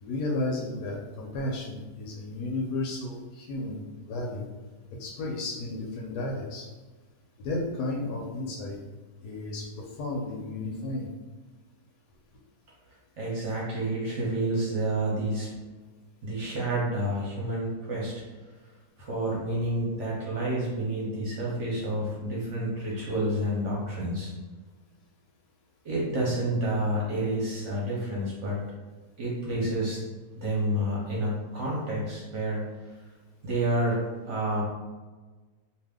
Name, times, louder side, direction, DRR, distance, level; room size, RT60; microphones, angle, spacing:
voice 1, 0.0-3.8 4.1-4.5 5.0-6.7 7.4-8.8 9.2-11.1, left 2 dB, 80° left, -2 dB, 1.1 m, -33 dB
voice 2, 13.2-15.5 16.2-18.2 19.1-24.3 25.8-28.6 29.2-30.0 30.4-32.7 33.4-34.6, right 1 dB, 60° right, -5 dB, 0.9 m, -29 dB
2.6 x 2.4 x 3.4 m, 1.3 s
omnidirectional pair, 1.7 m